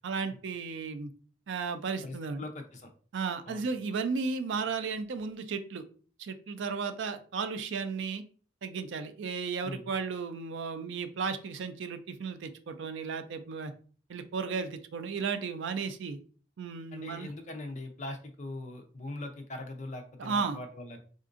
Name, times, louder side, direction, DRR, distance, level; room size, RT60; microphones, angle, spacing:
voice 1, 0.0-1.1 1.5-2.5 3.1-5.8 6.2-8.2 8.6-13.7 14.1-16.2 16.6-17.3 20.2-20.6, right 5 dB, 65° right, 9 dB, 0.4 m, -34 dB
voice 2, 2.0-2.9 3.5-3.7 9.6-9.9 16.9-21.0, left 2 dB, 35° left, 5 dB, 0.5 m, -41 dB
3.7 x 2.5 x 2.4 m, 0.41 s
head